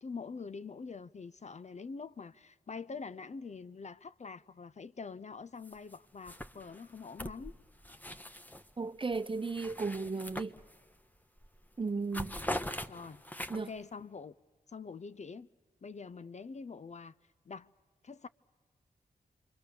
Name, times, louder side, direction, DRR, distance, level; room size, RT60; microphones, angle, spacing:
voice 1, 0.0-7.6 12.9-13.2 13.5-14.3 14.7-15.5 15.8-17.1 17.5-17.7 18.0-18.3, left 5 dB, 45° left, 0.6 m, -45 dB
sound 1, 5.6-6.0 6.2-8.7 9.1-11.0 11.4-11.6 11.9-13.8, left 1 dB, 10° left, 1.2 m, -42 dB
voice 2, 8.8-10.5 11.8-12.4 13.5-13.7, right 4 dB, 30° right, 0.9 m, -35 dB
27.5 x 23.5 x 6.9 m
supercardioid pair, 40°, 17 cm